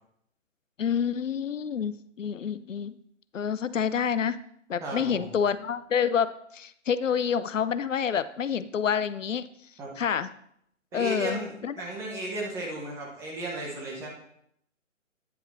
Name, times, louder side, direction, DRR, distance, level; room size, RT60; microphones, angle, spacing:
voice 1, 0.8-2.9 3.3-4.4 4.7-9.4 10.0-10.3 10.9-11.7, left 7 dB, 75° left, 14 dB, 0.5 m, -28 dB
voice 2, 4.8-5.3 9.8-9.9 10.9-14.1, right 1 dB, 5° right, -2 dB, 0.8 m, -34 dB
9.5 x 5.6 x 4.1 m, 0.70 s
figure-of-eight pair, 135°, 39 cm